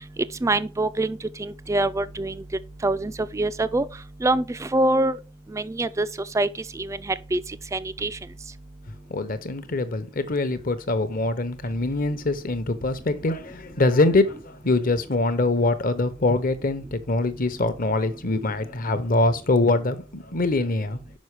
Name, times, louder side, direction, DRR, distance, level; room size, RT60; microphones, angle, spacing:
voice 1, 0.4-2.3 2.8-3.9 4.2-5.2 5.5-6.1 6.3-6.5 6.8-6.9 7.3-7.4 7.7-8.1, right 2 dB, 15° right, 0.3 m, -24 dB
voice 2, 9.1-21.0, left 2 dB, 45° left, 0.9 m, -24 dB
6.2 x 5.2 x 4.7 m
head